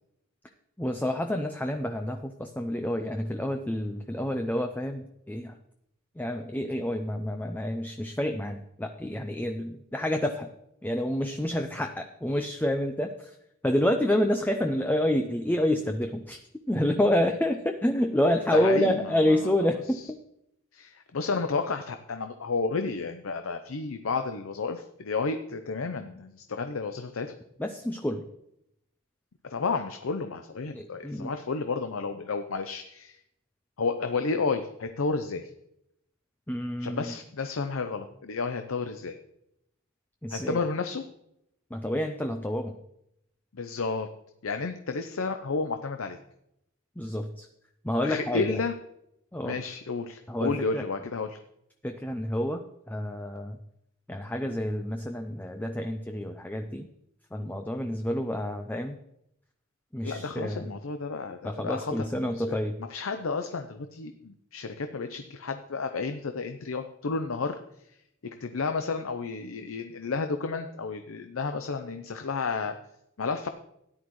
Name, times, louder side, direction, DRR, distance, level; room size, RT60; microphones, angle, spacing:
voice 1, 0.8-5.6 6.2-10.5 10.8-13.4 13.6-16.4 16.7-20.2 27.6-28.3 30.7-31.3 36.5-37.1 40.2-40.6 41.7-42.7 47.0-47.5 47.8-48.6 49.3-49.6 50.3-50.9 51.8-53.6 54.1-56.9 57.3-59.0 59.9-60.7 61.4-62.8, left 1 dB, 10° left, 5 dB, 0.5 m, -28 dB
voice 2, 18.5-19.5 20.7-27.3 29.5-33.2 33.8-35.5 36.8-39.1 40.3-41.0 43.5-44.1 44.4-46.2 48.0-48.7 49.4-51.4 60.0-61.9 62.2-62.6 62.9-67.6 68.2-72.7 73.2-73.5, left 4 dB, 85° left, 8 dB, 0.7 m, -31 dB
13.5 x 10.5 x 3.1 m, 0.79 s
head